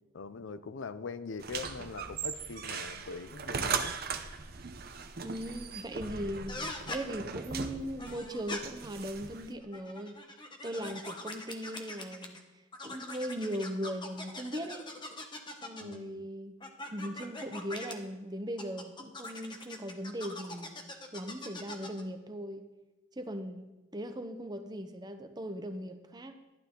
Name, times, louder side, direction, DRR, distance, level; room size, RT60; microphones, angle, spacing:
voice 1, 0.1-4.0 6.0-6.1 15.8-16.3, left 4 dB, 70° left, 14 dB, 0.5 m, -42 dB
sound 1, 1.4-9.5, right 5 dB, 50° right, 0.8 m, -39 dB
voice 2, 5.2-10.3 10.6-12.4 12.8-14.9 15.6-16.6 16.9-20.8 21.1-22.7 23.2-26.4, equal, 20° right, 7 dB, 0.8 m, -39 dB
sound 2, 6.5-7.0 8.0-8.6 9.6-12.4 12.7-16.0 16.6-17.9 18.6-22.0, left 2 dB, 25° left, 1.0 m, -42 dB
11.5 x 11.5 x 3.8 m, 1.0 s
head